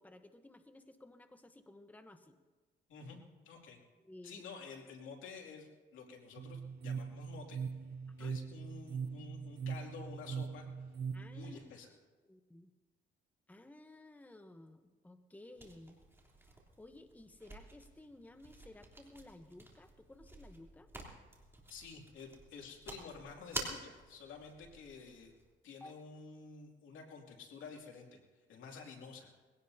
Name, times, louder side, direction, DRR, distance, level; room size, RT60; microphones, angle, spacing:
voice 1, 0.0-2.4 4.0-4.4 8.2-8.3 11.1-11.6 12.2-12.7 13.5-16.0 16.8-20.9 25.8-25.9, left 1 dB, 10° left, 8 dB, 0.9 m, -55 dB
voice 2, 3.4-3.8 4.2-7.6 8.2-10.7 11.3-11.9 21.7-25.3 25.6-28.2 28.5-29.3, left 5 dB, 80° left, 1 dB, 2.6 m, -50 dB
sound 1, 6.4-11.6, right 6 dB, 50° right, 0.6 m, -41 dB
sound 2, 15.6-25.5, right 2 dB, 10° right, 3.2 m, -50 dB
22.0 x 17.5 x 2.8 m, 1.3 s
cardioid pair, 90°, 20 cm